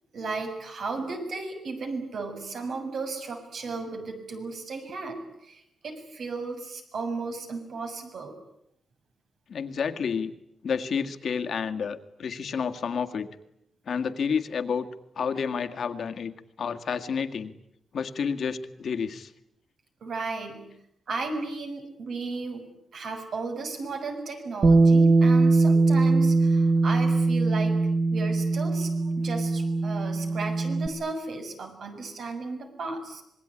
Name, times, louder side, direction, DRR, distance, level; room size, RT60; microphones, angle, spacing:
voice 1, 0.1-8.3 20.0-20.6 21.1-22.6 22.9-27.7 28.1-33.2, right 3 dB, 60° right, 5 dB, 7.1 m, -35 dB
voice 2, 9.5-10.3 10.6-13.3 13.9-14.9 15.2-17.5 17.9-19.3, left 6 dB, 60° left, 7 dB, 1.9 m, -30 dB
Bass guitar, 24.6-30.9, right 3 dB, 35° right, 1.3 m, -21 dB
26.5 x 21.5 x 9.9 m, 0.81 s
wide cardioid pair, 140°, 0 cm